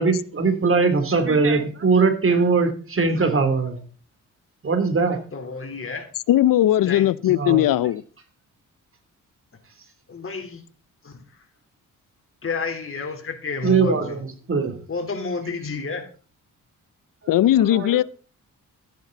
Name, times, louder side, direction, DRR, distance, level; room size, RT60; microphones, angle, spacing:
voice 1, 0.0-3.8 4.6-5.2 7.2-7.6 13.6-14.2 14.5-14.8 17.7-18.0, right 4 dB, 40° right, 3.1 m, -21 dB
voice 2, 5.3-6.1 6.9-7.1 10.1-10.6 11.0-11.2 12.4-14.2 14.9-16.0, left 4 dB, 40° left, 3.6 m, -30 dB
voice 3, 6.3-8.0 17.3-18.0, left 13 dB, 80° left, 0.7 m, -18 dB
13.5 x 10.5 x 4.0 m
cardioid pair, 80°, 33 cm